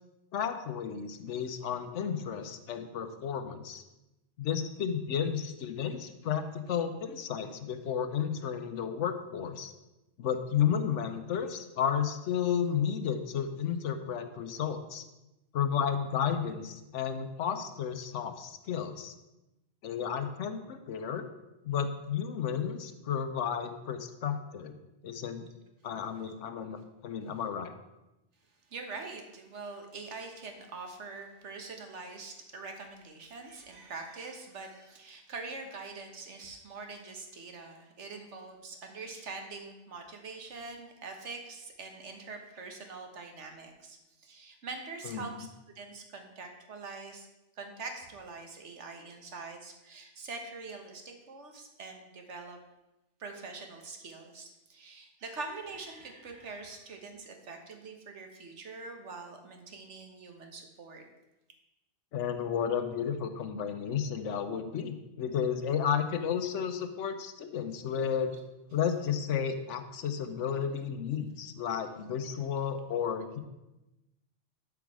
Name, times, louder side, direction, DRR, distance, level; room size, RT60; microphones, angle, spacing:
voice 1, 0.3-3.8 4.4-9.7 10.2-15.0 15.5-19.1 19.8-21.3 21.6-24.8 25.0-25.5 25.8-27.7 45.0-45.5 62.1-68.4 68.7-73.4, left 8 dB, 80° left, 8 dB, 1.1 m, -32 dB
voice 2, 28.7-45.5 45.7-47.3 47.5-52.6 53.2-61.0, right 3 dB, 75° right, 4 dB, 1.6 m, -44 dB
12.0 x 4.9 x 4.8 m, 0.97 s
omnidirectional pair, 1.2 m